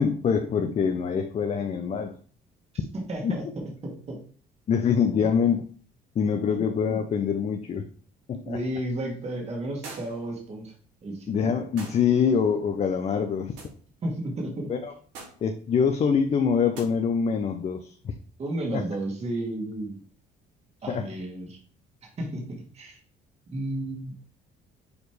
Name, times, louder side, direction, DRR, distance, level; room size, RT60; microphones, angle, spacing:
voice 1, 0.0-2.2 3.2-3.3 4.7-5.6 6.1-7.8 8.3-8.6 11.3-13.5 14.7-14.9 15.4-18.1 18.7-18.8 20.9-21.1, left 6 dB, 40° left, 6 dB, 0.7 m, -24 dB
voice 2, 2.9-4.2 5.2-5.3 6.5-6.6 8.4-10.7 11.0-11.4 14.0-14.7 18.4-20.0 20.8-21.6 22.2-23.0 23.5-24.1, right 1 dB, 40° right, 0 dB, 2.2 m, -33 dB
sound 1, 9.8-10.3 11.8-12.1 13.6-13.8 15.1-15.5 16.7-16.9, right 3 dB, 90° right, 2.6 m, -42 dB
7.0 x 4.2 x 3.3 m, 0.43 s
cardioid pair, 110°, 17 cm